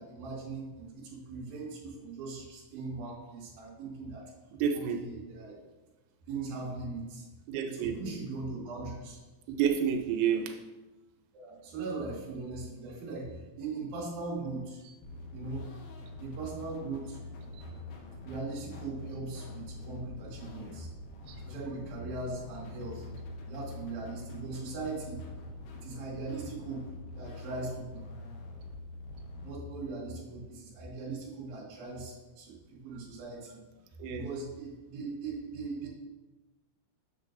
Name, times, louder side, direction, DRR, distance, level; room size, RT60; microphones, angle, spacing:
voice 1, 0.0-4.3 4.7-5.6 6.3-7.3 7.6-9.2 11.3-14.8 15.3-15.7 16.2-17.2 18.2-20.9 21.4-23.1 23.5-25.2 25.8-28.0 29.4-33.6 34.1-35.9, right 3 dB, 55° right, -7 dB, 3.6 m, -39 dB
voice 2, 4.6-5.0 7.5-8.2 9.5-10.5 21.3-21.4 34.0-34.3, right 8 dB, 90° right, 4 dB, 3.3 m, -29 dB
sound 1, 15.0-29.5, left 2 dB, 75° left, 3.4 m, -45 dB
9.0 x 6.6 x 2.5 m, 1.1 s
omnidirectional pair, 5.7 m